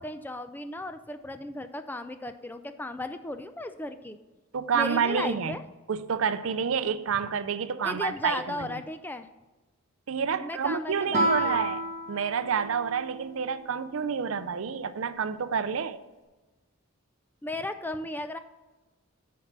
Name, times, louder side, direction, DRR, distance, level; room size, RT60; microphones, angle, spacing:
voice 1, 0.0-4.2 4.7-5.6 7.8-9.3 10.4-11.7 17.4-18.4, left 1 dB, 10° left, 0.3 m, -35 dB
voice 2, 4.5-5.6 5.9-8.8 10.1-11.8 12.1-16.0, right 6 dB, 65° right, 0.5 m, -29 dB
Guitar, 11.1-13.6, right 1 dB, 30° right, 1.2 m, -30 dB
9.7 x 4.6 x 5.9 m
head